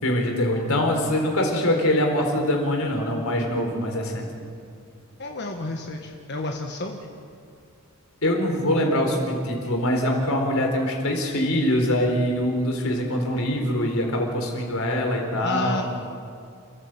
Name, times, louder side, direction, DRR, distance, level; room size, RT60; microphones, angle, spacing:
voice 1, 0.0-4.3 8.2-15.8, left 1 dB, 70° left, 2 dB, 4.3 m, -23 dB
voice 2, 5.2-7.0 15.4-15.8, left 1 dB, 50° left, 2 dB, 1.5 m, -31 dB
29.0 x 14.5 x 8.0 m, 2.3 s
head